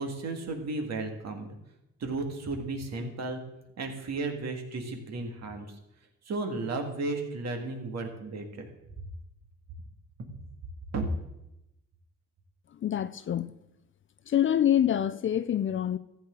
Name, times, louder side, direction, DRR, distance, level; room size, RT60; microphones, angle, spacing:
voice 1, 0.0-1.5 2.0-3.4 3.8-5.7 6.3-8.7 10.9-11.1, right 3 dB, 60° right, 2.1 m, -34 dB
voice 2, 12.8-13.5 14.3-16.0, left 10 dB, 40° left, 0.5 m, -26 dB
14.0 x 8.5 x 3.8 m
cardioid pair, 90°, 30 cm